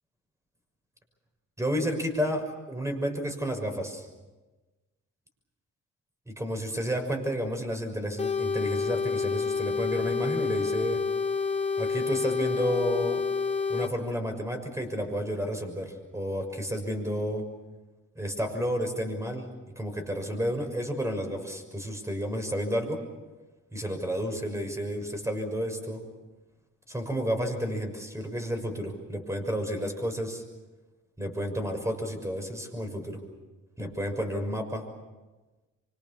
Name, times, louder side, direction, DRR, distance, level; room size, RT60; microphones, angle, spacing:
voice 1, 1.6-4.1 6.3-11.1 11.8-13.2 13.7-17.5 18.1-19.5 19.8-23.0 23.7-26.0 26.9-30.4 31.2-33.2 33.8-34.8, equal, 10° right, 5 dB, 6.3 m, -31 dB
sound 1, 8.2-13.9, left 5 dB, 25° left, 3.2 m, -28 dB
26.0 x 25.5 x 7.1 m, 1.2 s
cardioid pair, 90°, 30 cm